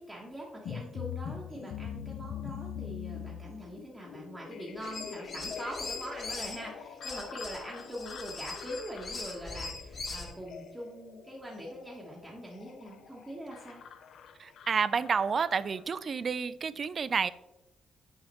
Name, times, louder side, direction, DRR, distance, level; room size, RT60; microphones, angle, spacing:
voice 1, 0.0-13.8, equal, 10° right, -4 dB, 1.2 m, -43 dB
sound 1, 0.6-15.8, left 8 dB, 70° left, 0.5 m, -44 dB
sound 2, 4.8-6.6 7.0-10.3, left 3 dB, 45° left, 1.4 m, -40 dB
voice 2, 14.4-17.3, right 6 dB, 45° right, 16 dB, 0.3 m, -30 dB
7.1 x 4.8 x 3.0 m, 0.95 s
cardioid pair, 90°, 0 cm